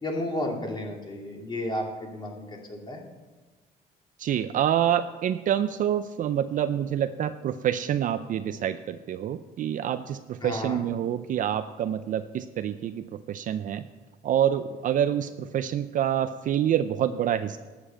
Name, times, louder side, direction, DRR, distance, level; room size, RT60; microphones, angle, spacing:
voice 1, 0.0-3.0 10.4-10.8, left 1 dB, 25° left, 0 dB, 2.6 m, -32 dB
voice 2, 4.2-13.9 14.2-17.6, right 10 dB, 50° right, 11 dB, 0.5 m, -27 dB
11.5 x 7.0 x 7.7 m, 1.3 s
cardioid pair, 110°, 17 cm